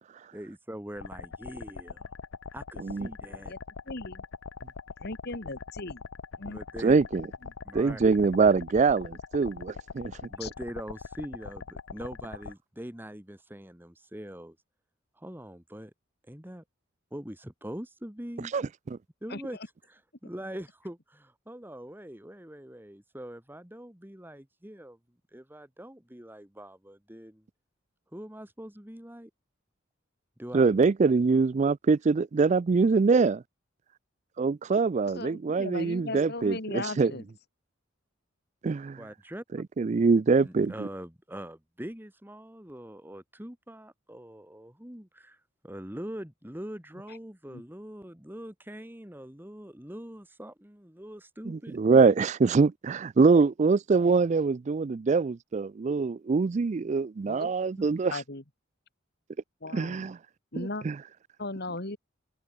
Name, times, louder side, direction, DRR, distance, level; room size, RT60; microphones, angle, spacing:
voice 1, 0.3-2.1 2.5-3.5 6.4-7.0 7.6-8.1 10.3-14.6 15.2-15.9 16.3-16.6 17.1-18.5 19.2-19.6 19.9-25.0 25.3-27.4 28.1-29.3 30.4-30.8 39.0-39.4 40.4-52.1, equal, 10° right, 1.9 m, -43 dB
sound 1, 1.0-12.5, left 5 dB, 80° left, 0.7 m, -42 dB
voice 2, 3.9-4.2 5.0-6.0 6.4-6.6 7.4-7.5 10.4-10.5 19.3-19.4 35.0-37.2 47.1-47.2 47.5-47.6 57.3-57.5 58.1-58.4 59.6-60.1 60.5-60.9 61.4-62.0, left 2 dB, 55° left, 2.4 m, -37 dB
voice 3, 6.8-7.3 7.7-10.1 18.5-19.0 30.5-33.4 34.4-37.1 38.6-39.0 39.8-40.9 51.5-58.1 59.7-60.2 60.6-61.0, right 4 dB, 35° right, 0.3 m, -24 dB
head